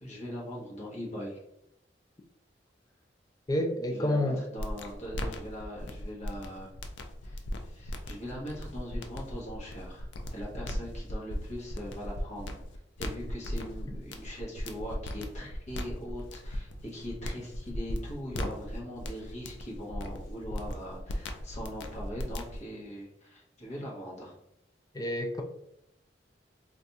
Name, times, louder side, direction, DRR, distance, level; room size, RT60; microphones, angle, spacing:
voice 1, 0.0-1.4 3.9-6.7 7.2-12.6 13.0-24.3, equal, 40° left, -4 dB, 1.1 m, -41 dB
voice 2, 3.5-4.4 24.9-25.4, left 1 dB, 20° left, 4 dB, 0.4 m, -29 dB
sound 1, 4.6-22.6, left 1 dB, 85° left, 0.4 m, -38 dB
2.5 x 2.3 x 4.0 m, 0.77 s
head